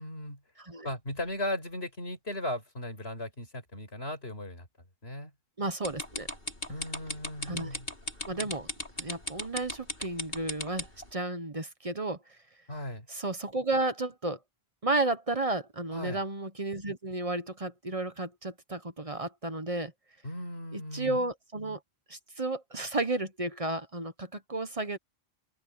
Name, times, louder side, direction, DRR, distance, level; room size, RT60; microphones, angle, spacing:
voice 1, 0.0-0.4 0.8-4.7 5.0-5.3 6.7-7.9 12.7-13.1 15.9-16.2 20.2-21.2, left 1 dB, 90° left, 6.2 m, -37 dB
voice 2, 5.6-6.3 7.4-7.8 8.3-8.7 9.0-10.9 11.1-12.2 13.1-14.4 14.8-19.9 20.7-21.8 22.1-25.0, right 2 dB, 35° right, 1.1 m, -32 dB
sound 1, 5.8-11.0, left 1 dB, 60° left, 5.3 m, -35 dB
open air
omnidirectional pair, 1.0 m